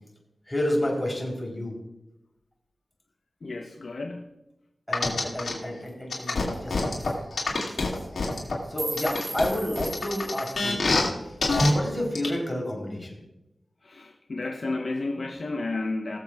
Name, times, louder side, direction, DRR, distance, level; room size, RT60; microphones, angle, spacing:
voice 1, 0.5-1.7 4.9-7.5 8.7-10.9 11.5-13.2, left 1 dB, 15° left, -2 dB, 3.6 m, -30 dB
voice 2, 3.4-4.3 13.8-16.2, left 2 dB, 60° left, 1 dB, 0.9 m, -32 dB
sound 1, 4.9-5.5 6.1-8.5 9.0-11.1 11.4-11.7 12.1-12.3, left 3 dB, 80° left, 2.2 m, -25 dB
sound 2, 5.9-6.0 6.2-6.3 6.5-6.7 7.0-7.1 7.8-8.0 8.3-10.6, right 3 dB, 80° right, 3.5 m, -38 dB
21.0 x 7.4 x 2.4 m, 0.92 s
wide cardioid pair, 65°, 0 cm